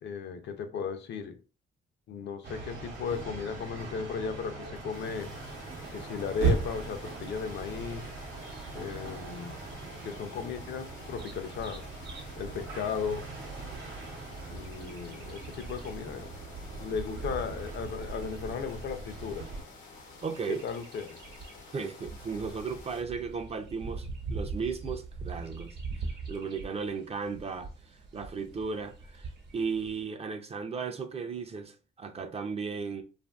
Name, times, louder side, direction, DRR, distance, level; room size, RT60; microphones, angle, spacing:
voice 1, 0.0-1.4 2.1-5.3 5.9-8.1 8.7-9.6 10.0-11.8 12.4-13.2 14.5-16.3 16.8-19.5 20.5-21.2, left 6 dB, 65° left, 0.5 m, -36 dB
sound 1, 2.4-19.6, right 4 dB, 85° right, 0.8 m, -38 dB
sound 2, 4.9-23.0, left 4 dB, 90° left, 0.9 m, -51 dB
Bird vocalization bird call bird song, 10.6-30.0, right 3 dB, 60° right, 0.9 m, -44 dB
voice 2, 20.2-20.6 21.7-33.0, right 5 dB, 30° right, 0.4 m, -36 dB
2.7 x 2.5 x 2.2 m
cardioid pair, 90°, 20 cm